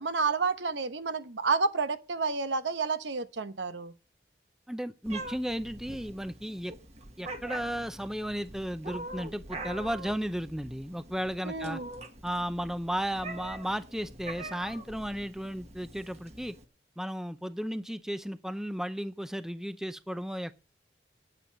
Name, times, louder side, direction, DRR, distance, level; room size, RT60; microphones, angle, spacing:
voice 1, 0.0-3.9 11.4-11.9, right 4 dB, 90° right, 1.0 m, -30 dB
voice 2, 4.7-6.7 7.2-11.8 12.2-16.5 17.0-20.5, equal, 5° right, 0.5 m, -34 dB
Meow, 5.1-16.6, right 2 dB, 40° right, 1.4 m, -44 dB
10.0 x 8.8 x 6.5 m
head